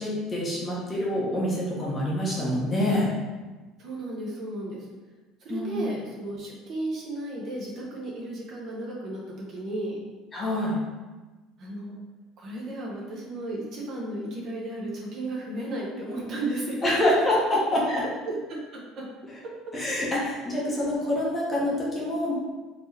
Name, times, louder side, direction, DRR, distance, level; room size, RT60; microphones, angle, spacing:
voice 1, 0.0-3.1 5.5-5.9 10.3-10.8 16.8-17.8 19.7-22.3, left 1 dB, 20° left, -5 dB, 0.8 m, -26 dB
voice 2, 3.8-4.9 5.4-10.0 11.6-11.9 12.4-17.0 17.9-19.0, right 1 dB, 40° right, -4 dB, 1.0 m, -34 dB
4.2 x 2.9 x 3.3 m, 1.2 s
cardioid pair, 165°, 0 cm